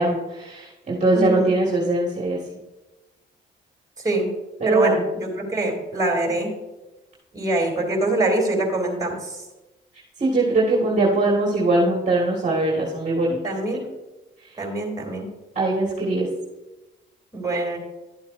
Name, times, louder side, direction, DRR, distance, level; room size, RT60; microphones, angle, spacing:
voice 1, 0.0-2.4 4.6-5.0 10.2-13.4 15.6-16.3, right 2 dB, 35° right, -3 dB, 1.9 m, -21 dB
voice 2, 1.1-1.5 4.0-4.3 4.6-6.5 7.3-9.4 13.4-13.8 14.6-15.3 17.3-17.8, right 2 dB, 20° right, 1 dB, 3.0 m, -24 dB
11.5 x 8.3 x 2.6 m, 1.0 s
cardioid pair, 90°, 20 cm